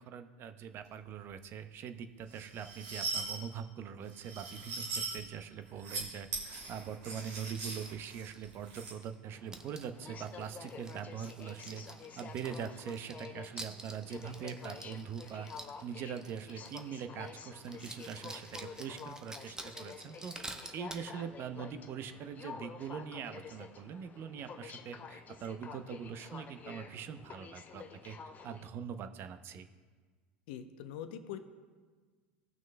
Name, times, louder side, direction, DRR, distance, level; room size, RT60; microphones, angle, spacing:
voice 1, 0.0-11.8 12.2-15.5 15.8-20.3 20.7-28.2 28.4-29.7, right 7 dB, 45° right, 9 dB, 0.6 m, -43 dB
sound 1, 2.3-3.4 4.1-5.2 5.7-6.0 6.3-8.9, right 4 dB, 65° right, 2.4 m, -40 dB
sound 2, 7.5-9.1 9.5-17.0 17.3-17.4 17.6-21.1, right 2 dB, 10° right, 0.8 m, -49 dB
Aircraft, 9.3-28.7, left 6 dB, 30° left, 0.6 m, -49 dB
voice 2, 30.5-31.4, left 9 dB, 65° left, 9 dB, 0.7 m, -43 dB
17.5 x 6.0 x 2.2 m, 1.5 s
hypercardioid pair, 85°, 6 cm